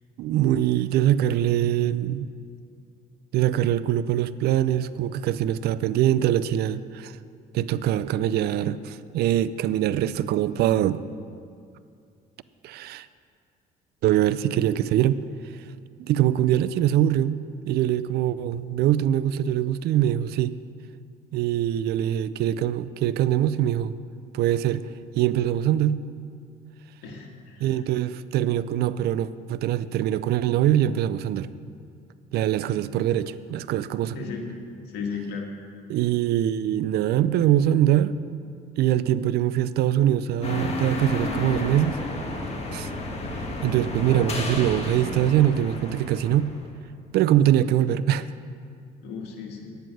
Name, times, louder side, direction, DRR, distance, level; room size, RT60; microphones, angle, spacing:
voice 1, 0.2-2.3 3.3-7.1 7.5-11.0 12.6-13.1 14.0-15.2 16.0-17.4 17.7-20.5 21.3-23.9 24.3-24.8 25.1-26.0 27.6-31.5 32.3-34.2 35.9-38.1 38.8-42.0 42.7-42.9 43.6-46.5 47.1-48.3, right 12 dB, 70° right, 16 dB, 0.4 m, -23 dB
voice 2, 27.0-27.8 34.1-34.5 34.9-35.5 49.0-49.8, left 5 dB, 80° left, 1 dB, 1.9 m, -35 dB
sound 1, 40.4-46.7, left 2 dB, 40° left, 1.8 m, -31 dB
10.5 x 9.3 x 6.2 m, 2.3 s
cardioid pair, 110°, 17 cm